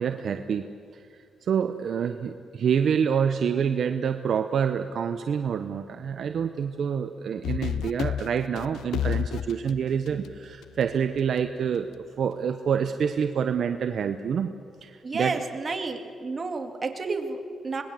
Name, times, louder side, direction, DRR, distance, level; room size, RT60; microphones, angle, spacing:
voice 1, 0.0-11.9 12.2-14.5 14.8-15.4, right 7 dB, 65° right, 8 dB, 0.9 m, -27 dB
sound 1, 7.4-10.9, left 9 dB, 85° left, 0.5 m, -30 dB
voice 2, 15.0-17.8, right 4 dB, 35° right, 5 dB, 2.4 m, -31 dB
25.5 x 20.0 x 7.8 m, 2.3 s
cardioid pair, 90°, 0 cm